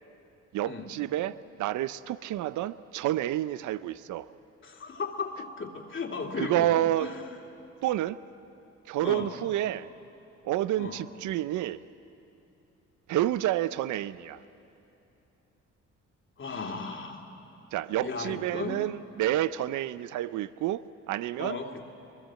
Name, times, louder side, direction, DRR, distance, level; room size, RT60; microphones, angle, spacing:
voice 1, 0.5-4.3 6.4-7.1 7.8-8.2 8.9-9.9 10.4-11.8 13.1-14.4 17.7-21.6, right 13 dB, 75° right, 16 dB, 0.6 m, -29 dB
voice 2, 4.6-6.7 7.0-7.2 9.0-9.3 10.8-11.0 16.4-17.3 18.0-18.8 21.4-21.8, left 4 dB, 40° left, 2 dB, 2.7 m, -35 dB
23.0 x 21.5 x 7.7 m, 2.8 s
cardioid pair, 90°, 30 cm